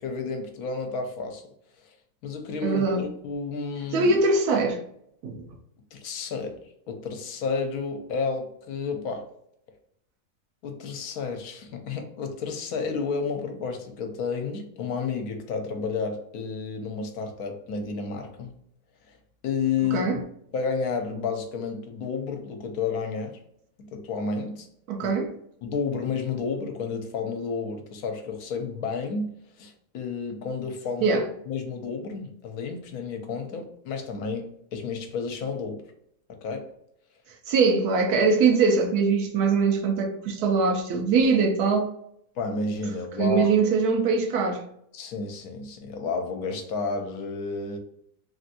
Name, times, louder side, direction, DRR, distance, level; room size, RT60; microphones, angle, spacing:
voice 1, 0.0-1.4 2.2-4.2 5.9-6.6 6.9-9.2 10.6-18.5 19.1-19.2 19.4-20.2 20.5-23.4 23.9-24.7 25.0-25.1 25.6-35.8 36.4-36.7 42.4-43.6 44.9-47.8, left 4 dB, 75° left, 1.1 m, -31 dB
voice 2, 2.6-3.0 3.9-4.8 5.2-5.5 19.9-20.2 24.9-25.3 31.0-31.2 37.5-41.9 43.2-44.6, right 4 dB, 80° right, 1.2 m, -22 dB
3.2 x 2.5 x 2.6 m
omnidirectional pair, 1.6 m